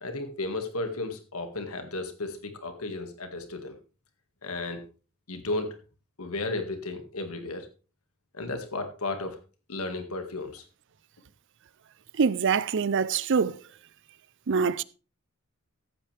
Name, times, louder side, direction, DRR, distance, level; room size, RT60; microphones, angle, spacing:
voice 1, 0.0-3.8 4.4-4.8 5.3-5.7 6.2-7.7 8.3-9.4 9.7-10.6, left 2 dB, 80° left, 1.9 m, -34 dB
voice 2, 12.2-13.6 14.5-14.8, right 5 dB, 55° right, 0.5 m, -24 dB
14.5 x 8.9 x 3.4 m
head